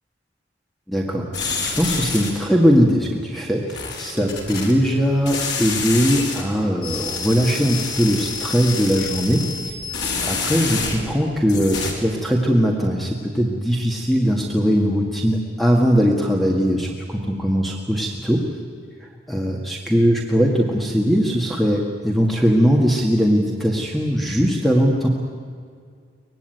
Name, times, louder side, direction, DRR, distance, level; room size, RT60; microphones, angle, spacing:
voice 1, 0.9-1.5 1.8-9.5 9.9-18.4 19.0-25.1, equal, ahead, 0 dB, 1.9 m, -20 dB
sound 1, 1.3-2.5 3.7-4.7 5.3-6.4 6.8-11.2 11.5-11.9, left 4 dB, 80° left, 4.5 m, -27 dB
24.0 x 20.0 x 9.3 m, 2.1 s
head